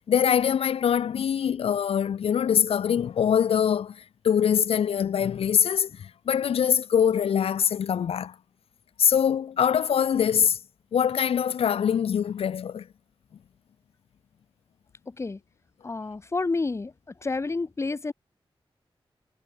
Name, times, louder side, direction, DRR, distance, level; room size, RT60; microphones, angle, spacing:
voice 1, 0.0-8.4 9.0-10.6 10.9-12.9, left 8 dB, 85° left, 0.4 m, -23 dB
voice 2, 15.1-15.4 15.8-16.9 17.2-18.1, left 3 dB, 30° left, 0.8 m, -29 dB
wide cardioid pair, 145°, 10 cm